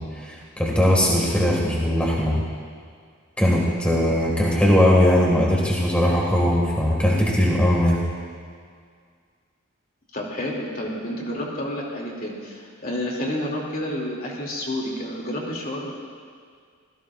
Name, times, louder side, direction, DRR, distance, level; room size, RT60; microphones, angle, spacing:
voice 1, 0.0-2.4 3.4-8.0, left 1 dB, 5° left, -4 dB, 1.9 m, -20 dB
voice 2, 10.1-15.9, left 1 dB, 45° left, -2 dB, 2.6 m, -30 dB
27.0 x 16.0 x 2.5 m, 2.1 s
head